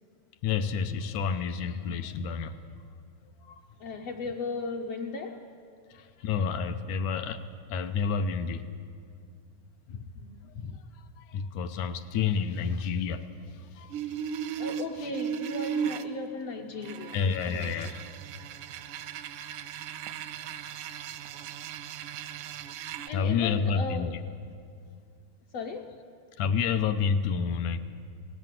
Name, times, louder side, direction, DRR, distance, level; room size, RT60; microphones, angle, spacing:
voice 1, 0.4-2.6 3.4-3.6 5.9-7.4 7.7-8.6 9.9-10.1 10.6-10.8 11.2-13.3 13.8-14.0 17.1-18.1 23.1-24.1 26.4-27.8, left 6 dB, 80° left, 9 dB, 2.2 m, -29 dB
voice 2, 3.8-5.5 10.1-10.4 14.6-17.2 17.4-17.9 23.1-24.2 25.5-26.0, left 3 dB, 65° left, 1 dB, 1.7 m, -36 dB
sound 1, 13.9-16.1 16.8-23.1, right 8 dB, 85° right, 2.1 m, -36 dB
18.5 x 16.0 x 9.1 m, 2.3 s
omnidirectional pair, 3.5 m